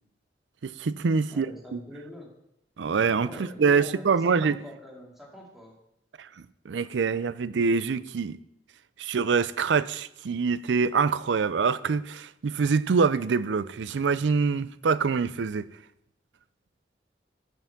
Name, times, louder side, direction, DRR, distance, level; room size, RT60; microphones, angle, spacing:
voice 1, 0.6-1.5 1.7-1.8 2.8-4.6 6.2-6.3 6.6-8.4 9.0-15.7, right 5 dB, 90° right, 0.4 m, -25 dB
voice 2, 1.3-2.3 3.2-5.8, left 1 dB, ahead, 2.4 m, -44 dB
9.3 x 6.9 x 5.9 m
head